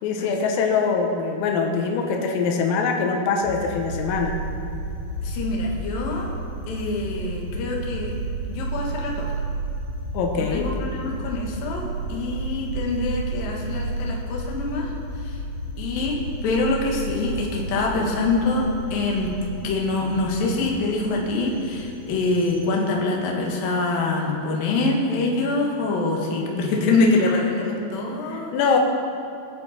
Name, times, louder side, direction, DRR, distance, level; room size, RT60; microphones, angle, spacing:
voice 1, 0.0-4.3 10.1-10.7 26.4-26.7 28.3-28.8, left 5 dB, 90° left, 2 dB, 3.9 m, -23 dB
sound 1, 3.4-22.6, right 2 dB, 35° left, 4.3 m, -32 dB
voice 2, 5.2-6.3 6.7-8.1 8.5-9.3 10.4-14.9 15.2-15.4 15.8-16.2 16.4-19.3 19.6-28.5, left 3 dB, 55° left, -2 dB, 2.9 m, -25 dB
24.0 x 8.1 x 4.3 m, 2.8 s
omnidirectional pair, 5.9 m